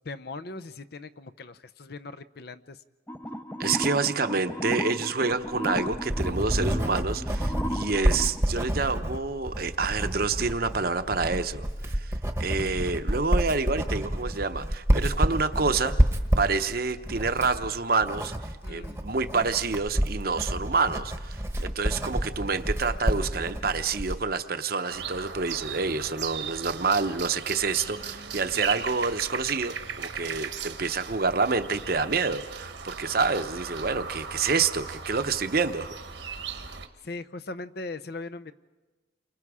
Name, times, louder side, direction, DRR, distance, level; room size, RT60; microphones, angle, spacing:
voice 1, 0.0-2.8 18.6-19.0 37.0-38.5, left 3 dB, 55° left, 12 dB, 0.6 m, -39 dB
sound 1, 3.1-8.4, equal, 10° left, 0.6 m, -34 dB
voice 2, 3.6-16.0 16.4-35.9, right 4 dB, 50° right, 10 dB, 0.8 m, -28 dB
Writing, 5.5-24.2, equal, 15° right, 1.1 m, -29 dB
sound 2, 24.9-36.9, right 6 dB, 65° right, 1.2 m, -37 dB
29.0 x 25.0 x 4.9 m, 1.2 s
head